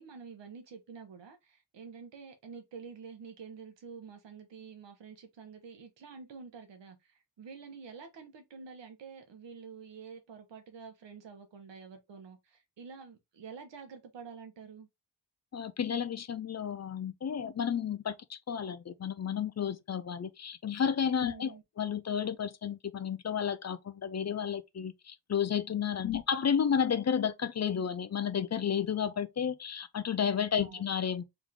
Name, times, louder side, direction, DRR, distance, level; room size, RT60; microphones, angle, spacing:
voice 1, 0.0-14.9 21.2-21.6 26.0-26.2 30.6-30.9, right 5 dB, 90° right, 1.3 m, -48 dB
voice 2, 15.5-31.2, left 7 dB, 40° left, 0.6 m, -32 dB
3.7 x 3.1 x 3.7 m
wide cardioid pair, 110°, 42 cm